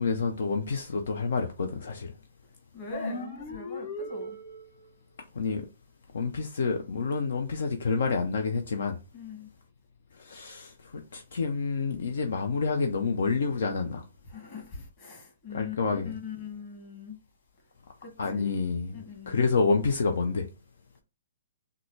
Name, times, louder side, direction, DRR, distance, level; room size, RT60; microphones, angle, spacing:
voice 1, 0.0-2.1 5.4-5.7 6.1-9.0 10.2-14.0 15.5-16.2 18.2-19.0 19.3-20.5, left 4 dB, 70° left, 0.5 m, -28 dB
voice 2, 2.7-4.4 9.1-9.5 14.3-15.8 16.1-17.2 18.0-18.5 18.9-19.4, left 5 dB, 35° left, 1.6 m, -41 dB
sound 1, 2.9-4.9, left 1 dB, 55° left, 1.0 m, -37 dB
3.7 x 2.2 x 3.1 m
hypercardioid pair, 135°, 0 cm